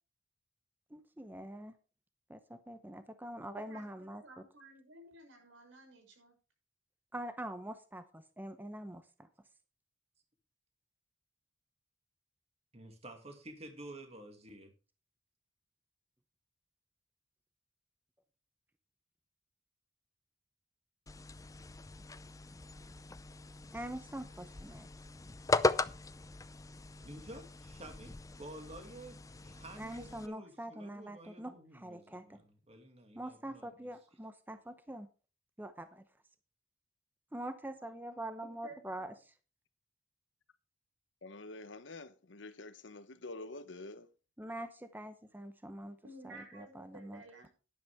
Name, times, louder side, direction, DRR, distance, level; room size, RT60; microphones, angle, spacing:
voice 1, 0.9-1.7 2.3-4.2 7.1-9.3 23.7-24.9 29.8-32.4 33.1-35.1 35.6-36.0 37.3-39.1 44.4-46.0 46.2-47.5, right 1 dB, 10° right, 0.8 m, -44 dB
voice 2, 3.6-6.3 38.6-39.2 46.0-47.5, right 2 dB, 85° right, 6.2 m, -54 dB
voice 3, 12.7-14.7 27.0-33.9, right 1 dB, 35° right, 2.4 m, -51 dB
sound 1, 21.1-30.3, left 3 dB, 20° left, 0.5 m, -38 dB
voice 4, 41.2-44.1, left 2 dB, 70° left, 1.0 m, -47 dB
12.0 x 11.0 x 3.5 m
head